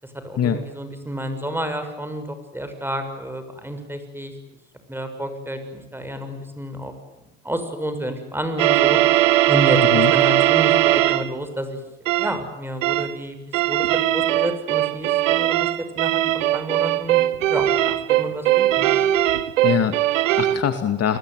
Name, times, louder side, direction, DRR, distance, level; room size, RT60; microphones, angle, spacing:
voice 1, 0.0-4.3 4.9-6.9 7.4-9.0 9.5-11.8 12.2-17.2 17.5-18.9, right 1 dB, 5° right, 8 dB, 7.1 m, -30 dB
sound 1, 8.6-11.3 12.1-12.4 12.8-13.1 13.5-20.6, right 14 dB, 90° right, 1.4 m, -19 dB
voice 2, 19.6-21.2, left 9 dB, 40° left, 9 dB, 2.4 m, -23 dB
28.5 x 21.0 x 9.6 m, 0.88 s
hypercardioid pair, 85°, 37 cm